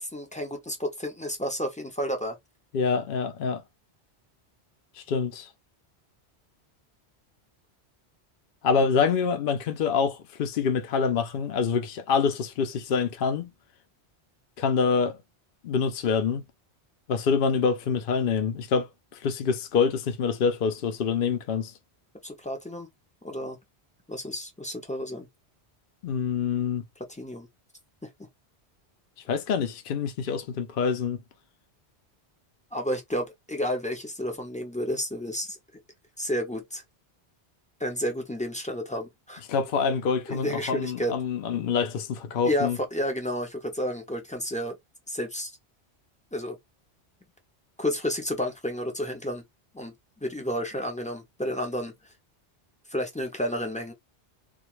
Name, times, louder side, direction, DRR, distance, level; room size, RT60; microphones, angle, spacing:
voice 1, 0.0-2.4 22.2-22.9 23.2-23.6 24.1-25.3 27.1-27.5 28.0-28.1 32.7-35.6 36.2-36.8 37.8-39.4 40.3-41.2 42.4-44.8 45.1-45.5 46.3-46.6 47.8-49.4 49.7-49.9 50.2-51.9 52.9-53.9, equal, 10° left, 0.4 m, -31 dB
voice 2, 2.7-3.6 5.1-5.5 8.6-13.5 14.6-15.2 15.6-16.4 17.1-18.9 19.2-21.7 26.0-26.8 29.3-31.2 39.5-42.8, left 6 dB, 60° left, 0.7 m, -26 dB
2.3 x 2.3 x 2.9 m
omnidirectional pair, 1.1 m